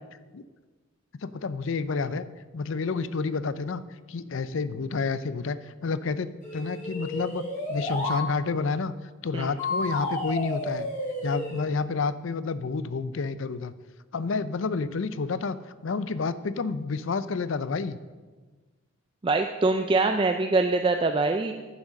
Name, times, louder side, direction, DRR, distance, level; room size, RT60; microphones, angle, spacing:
voice 1, 1.1-2.2 2.5-3.8 4.1-8.9 9.2-10.9 11.2-13.7 14.1-15.6 15.8-18.0, left 4 dB, 60° left, 15 dB, 0.5 m, -29 dB
sound 1, 6.4-8.2 9.6-11.6, left 1 dB, 35° left, 2.6 m, -31 dB
voice 2, 19.2-21.5, right 3 dB, 25° right, 5 dB, 0.4 m, -23 dB
10.5 x 7.3 x 6.4 m, 1.3 s
head